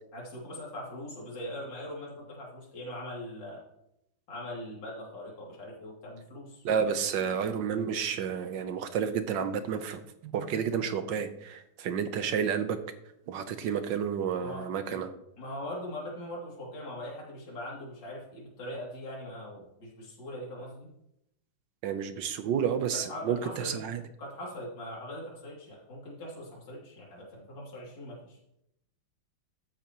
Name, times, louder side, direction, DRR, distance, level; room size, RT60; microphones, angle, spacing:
voice 1, 0.1-3.6 4.3-6.7 14.4-15.0 15.4-20.9 22.9-23.9 24.2-28.4, left 1 dB, 65° left, -5 dB, 3.4 m, -41 dB
voice 2, 6.6-12.8 13.3-15.1 21.8-24.0, right 7 dB, 70° right, 9 dB, 1.4 m, -30 dB
13.5 x 8.7 x 3.0 m, 0.80 s
omnidirectional pair, 2.2 m